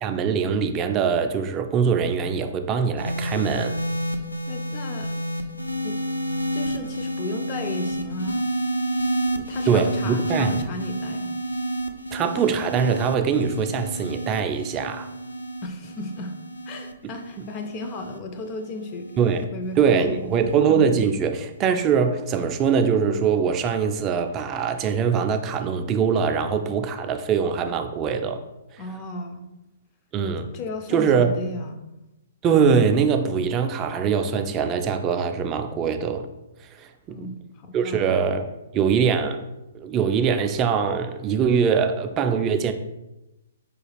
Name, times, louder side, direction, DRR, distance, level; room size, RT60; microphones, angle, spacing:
voice 1, 0.0-3.8 9.7-10.6 12.1-15.1 17.0-17.1 19.2-19.5 19.8-28.4 28.7-28.8 30.1-30.5 30.9-31.4 32.4-36.3 36.7-37.3 37.7-39.5 39.7-42.7, right 6 dB, 25° right, 0.3 m, -22 dB
sound 1, 3.0-19.4 20.3-20.7, right 1 dB, 90° left, 0.3 m, -30 dB
voice 2, 4.5-5.2 5.8-6.0 6.5-8.4 9.3-11.3 15.6-16.3 16.7-20.5 28.8-29.4 30.5-31.7 37.1-38.2, left 2 dB, 30° left, 0.5 m, -35 dB
4.7 x 2.3 x 3.3 m
figure-of-eight pair, 120°, 0 cm